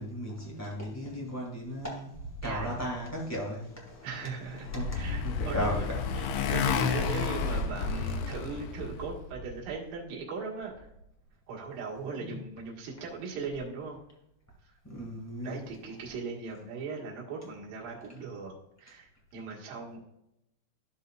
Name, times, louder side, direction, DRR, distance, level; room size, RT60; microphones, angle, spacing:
voice 1, 0.0-2.1 2.4-4.0 4.7-4.9 5.2-6.0 12.0-12.4 14.8-15.6, equal, 25° left, -4 dB, 0.3 m, -35 dB
voice 2, 2.4-2.7 4.0-4.7 4.9-5.9 6.1-10.9 11.5-14.0 14.6-14.7 15.4-18.5 18.8-20.0, right 4 dB, 70° right, -2 dB, 3.3 m, -39 dB
Motorcycle, 4.2-9.2, left 5 dB, 90° left, 2.7 m, -31 dB
13.5 x 5.5 x 2.5 m, 0.81 s
omnidirectional pair, 4.5 m